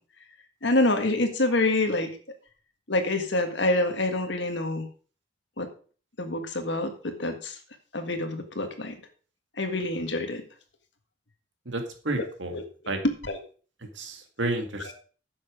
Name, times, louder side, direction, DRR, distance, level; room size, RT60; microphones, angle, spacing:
voice 1, 0.6-2.1 2.9-4.9 5.6-5.7 6.2-7.6 7.9-9.0 9.6-10.4 12.5-13.4 14.8-14.9, left 2 dB, 65° left, 6 dB, 1.7 m, -27 dB
voice 2, 11.7-12.6 12.9-13.0 14.0-14.9, right 2 dB, 70° right, 5 dB, 2.0 m, -31 dB
9.9 x 7.0 x 5.0 m, 0.40 s
head